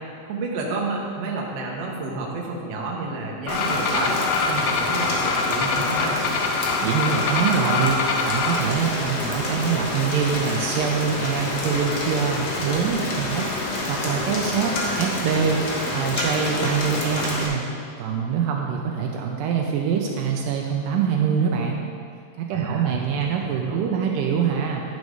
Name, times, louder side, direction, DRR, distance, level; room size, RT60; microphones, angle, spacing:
voice 1, 0.3-4.2 4.5-6.2 22.5-23.8, right 3 dB, 60° right, -2 dB, 1.7 m, -30 dB
sound 1, 3.5-8.6, left 4 dB, 80° left, 2.1 m, -25 dB
Rain, 3.5-17.5, left 2 dB, 60° left, 1.7 m, -28 dB
voice 2, 6.8-17.7 18.0-21.8 22.4-24.8, right 6 dB, 80° right, 1 dB, 2.2 m, -24 dB
11.0 x 5.2 x 4.8 m, 2.5 s
omnidirectional pair, 4.1 m